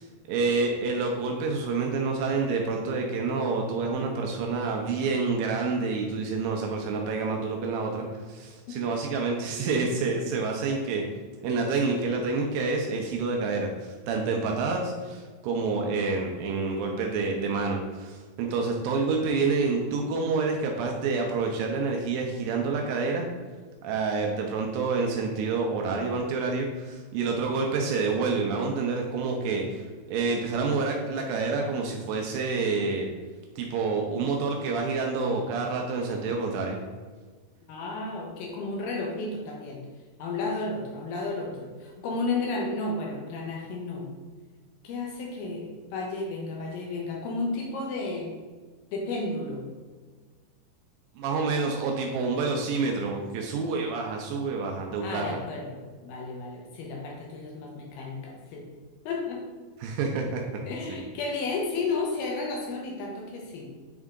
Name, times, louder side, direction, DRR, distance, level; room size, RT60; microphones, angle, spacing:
voice 1, 0.0-11.0 11.4-23.3 23.8-33.1 33.6-36.8 51.2-55.4 59.8-60.6 60.9-61.0, right 4 dB, 90° right, 1 dB, 2.0 m, -28 dB
voice 2, 37.7-39.9 40.2-44.1 44.8-48.3 48.9-49.6 55.0-58.7 59.1-59.4 60.7-63.7, left 3 dB, 80° left, 0 dB, 2.2 m, -32 dB
7.8 x 3.5 x 3.7 m, 1.5 s
omnidirectional pair, 4.9 m